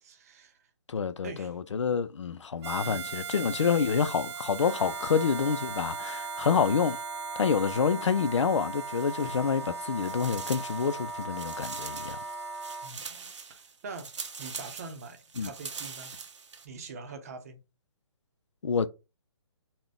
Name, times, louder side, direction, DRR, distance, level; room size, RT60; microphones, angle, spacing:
voice 1, 0.0-0.7 1.2-1.5 2.9-3.1 12.8-14.1 14.4-16.1 16.6-17.6, right 4 dB, 35° right, 0.7 m, -44 dB
voice 2, 0.9-7.0 7.4-12.2 15.4-15.5 18.6-18.9, left 6 dB, 90° left, 0.5 m, -28 dB
Harmonica, 2.6-12.9, right 7 dB, 70° right, 0.5 m, -42 dB
Wind instrument woodwind instrument, 4.6-12.9, right 2 dB, ahead, 0.7 m, -39 dB
sound 1, 8.8-9.7 10.0-16.7, right 5 dB, 85° right, 0.9 m, -43 dB
4.2 x 2.2 x 3.5 m
hypercardioid pair, 165°, 15 cm